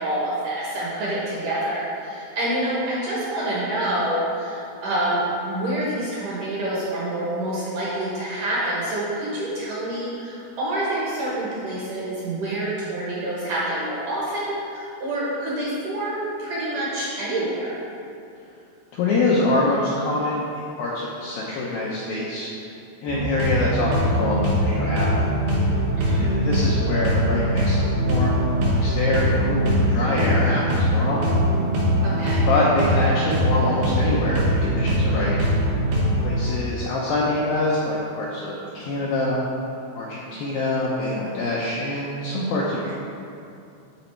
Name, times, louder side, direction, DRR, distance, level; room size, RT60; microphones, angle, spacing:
voice 1, 0.0-17.7 26.0-26.3 32.0-32.4, right 1 dB, 65° right, -7 dB, 2.2 m, -27 dB
voice 2, 18.9-22.5 23.0-25.2 26.1-31.3 32.5-35.8 36.2-39.4 39.9-42.9, left 2 dB, 80° left, -5 dB, 2.1 m, -25 dB
sound 1, 23.1-36.4, equal, 90° right, 3.8 m, -22 dB
12.0 x 4.1 x 4.5 m, 2.6 s
omnidirectional pair, 5.1 m